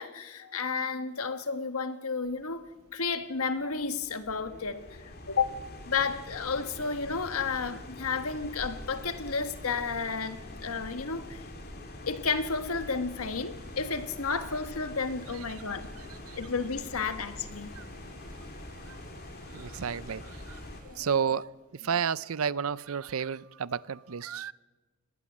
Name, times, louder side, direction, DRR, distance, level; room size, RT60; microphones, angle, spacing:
voice 1, 0.0-2.7 2.9-5.6 5.8-11.4 12.0-15.9 16.3-17.7 20.8-21.3 21.8-21.9, left 5 dB, 80° left, 10 dB, 1.4 m, -32 dB
sound 1, 2.2-20.8, left 1 dB, 45° left, 2.9 m, -45 dB
sound 2, 13.5-21.1, right 3 dB, 40° right, 7.2 m, -59 dB
voice 2, 19.5-20.2 20.5-20.6 21.0-21.4 21.8-24.5, right 7 dB, 70° right, 19 dB, 0.6 m, -31 dB
20.5 x 19.0 x 7.3 m, 1.2 s
head